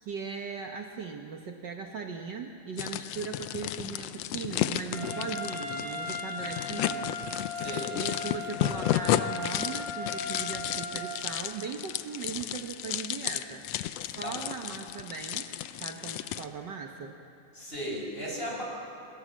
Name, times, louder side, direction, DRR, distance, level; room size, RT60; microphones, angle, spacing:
voice 1, 0.0-7.1 7.9-13.6 14.0-15.5 15.8-17.2, right 5 dB, 75° right, 3 dB, 1.0 m, -38 dB
sound 1, 2.8-16.5, left 13 dB, 80° left, 1.4 m, -33 dB
Trumpet, 4.9-11.0, left 3 dB, 55° right, 6.4 m, -37 dB
voice 2, 7.5-7.9 14.2-14.4 17.5-18.6, equal, 15° left, -1 dB, 5.9 m, -36 dB
27.5 x 22.0 x 7.5 m, 2.8 s
omnidirectional pair, 3.6 m